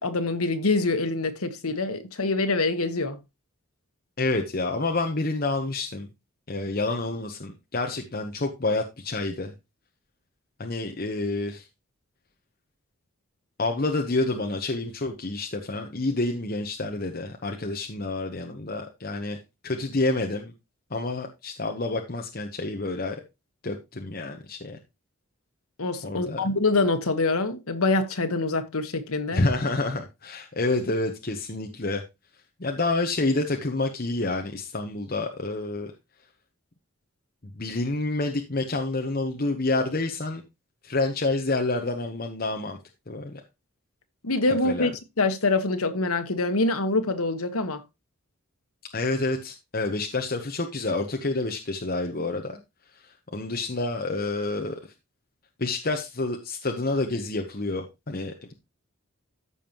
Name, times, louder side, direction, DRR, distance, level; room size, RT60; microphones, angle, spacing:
voice 1, 0.0-3.2 25.8-29.4 44.2-44.9 45.2-47.8, left 3 dB, 85° left, 1.3 m, -25 dB
voice 2, 4.2-6.1 6.5-9.5 10.6-11.7 13.6-19.4 19.6-20.5 20.9-23.2 23.6-24.8 26.0-26.4 29.3-32.0 32.6-35.9 37.6-40.4 40.8-42.8 43.1-43.4 44.6-44.9 48.9-52.6 52.9-54.8 55.6-58.5, left 2 dB, 45° left, 0.9 m, -28 dB
14.0 x 5.4 x 3.0 m
head